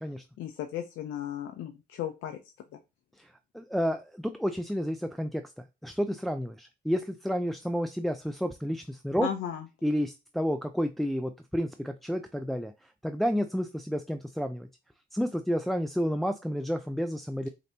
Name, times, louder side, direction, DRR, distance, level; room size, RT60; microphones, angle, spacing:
voice 1, 0.4-2.4 2.7-2.8 9.2-9.7, left 10 dB, 85° left, 6 dB, 0.6 m, -35 dB
voice 2, 3.2-9.3 9.8-14.7 15.1-17.5, equal, ahead, 7 dB, 0.3 m, -31 dB
5.1 x 2.8 x 2.7 m, 0.25 s
cardioid pair, 90°, 20 cm